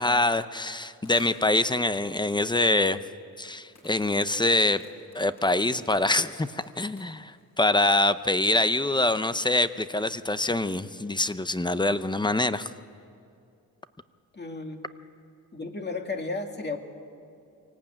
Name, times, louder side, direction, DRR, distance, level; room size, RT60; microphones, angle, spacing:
voice 1, 0.0-3.0 3.4-4.8 5.1-12.7, left 2 dB, 10° left, 13 dB, 0.6 m, -25 dB
sound 1, 1.0-2.0 2.7-2.8 3.7-8.3, left 2 dB, 45° left, 7.8 m, -55 dB
voice 2, 14.3-14.8 15.5-16.8, left 3 dB, 30° left, 4 dB, 2.1 m, -33 dB
25.0 x 18.0 x 8.8 m, 2.5 s
wide cardioid pair, 110°, 36 cm